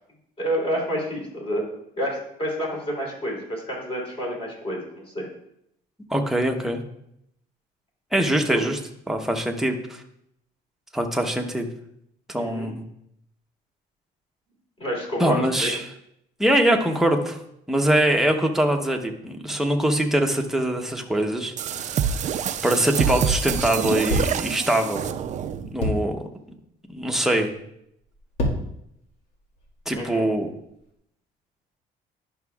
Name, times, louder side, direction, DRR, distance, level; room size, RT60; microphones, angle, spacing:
voice 1, 0.4-1.7 2.0-5.2 8.5-8.6 12.4-12.7 14.8-15.7 19.4-19.5 29.9-30.3, equal, 35° left, -3 dB, 3.3 m, -29 dB
voice 2, 6.1-6.8 8.1-8.8 9.1-10.0 10.9-11.7 12.3-12.7 15.2-15.8 16.4-17.4 17.7-22.0 22.6-25.1 25.7-26.2 26.9-27.5 29.9-30.5, right 1 dB, ahead, 2 dB, 0.9 m, -23 dB
sound 1, 21.6-25.7, right 7 dB, 45° right, 0.5 m, -26 dB
sound 2, 24.1-24.5 25.8-26.2 27.0-27.3 28.1-28.8 29.4-30.3, left 1 dB, 70° left, 1.9 m, -27 dB
11.5 x 6.1 x 2.4 m, 0.75 s
cardioid pair, 110°, 17 cm